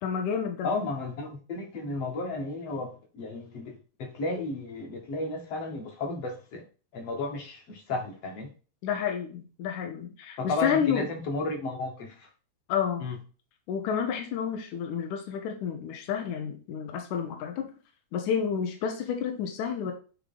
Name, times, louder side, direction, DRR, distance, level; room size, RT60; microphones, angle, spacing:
voice 1, 0.0-0.7 8.8-11.1 12.7-13.1 13.7-17.7 18.1-19.9, left 7 dB, 75° left, 3 dB, 2.3 m, -30 dB
voice 2, 0.6-6.6 6.9-8.5 10.4-12.3 13.0-13.2, left 2 dB, 55° left, 2 dB, 2.3 m, -33 dB
8.6 x 3.3 x 3.8 m, 0.36 s
omnidirectional pair, 3.6 m